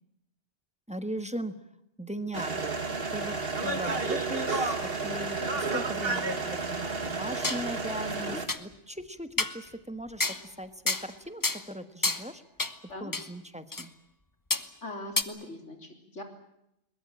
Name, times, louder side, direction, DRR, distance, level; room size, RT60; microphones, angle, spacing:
voice 1, 0.9-1.5 2.0-4.8 5.0-12.4 12.8-13.9, equal, 5° right, 10 dB, 1.3 m, -39 dB
sound 1, 2.3-8.5, right 3 dB, 55° right, 2.1 m, -31 dB
sound 2, 7.0-7.6 8.1-8.2 8.5-8.6 9.4-9.6 10.2-10.4 10.9-11.1 11.4-11.6 12.0-12.2 12.6-12.7 13.1-13.3 13.7-13.9 14.5-14.6 15.2-15.3, left 2 dB, 20° left, 1.0 m, -29 dB
voice 2, 8.0-8.4 12.9-13.1 14.8-16.2, left 2 dB, 85° left, 4 dB, 3.8 m, -41 dB
22.0 x 21.0 x 8.9 m, 0.82 s
omnidirectional pair, 1.2 m